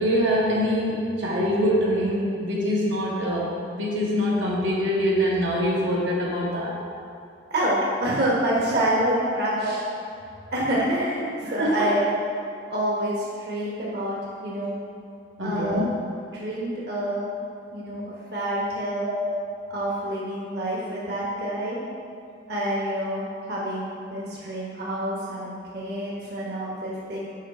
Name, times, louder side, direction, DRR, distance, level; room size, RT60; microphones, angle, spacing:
voice 1, 0.0-6.8 9.6-9.7 11.4-11.9 15.4-15.8 19.1-19.3, equal, 85° right, -5 dB, 1.5 m, -24 dB
voice 2, 7.5-9.8 10.5-12.0 12.7-14.8 15.4-15.9 16.3-17.3 17.7-19.1 19.7-21.8 22.5-27.2, right 1 dB, 60° right, -6 dB, 1.3 m, -27 dB
6.5 x 5.0 x 4.9 m, 2.5 s
head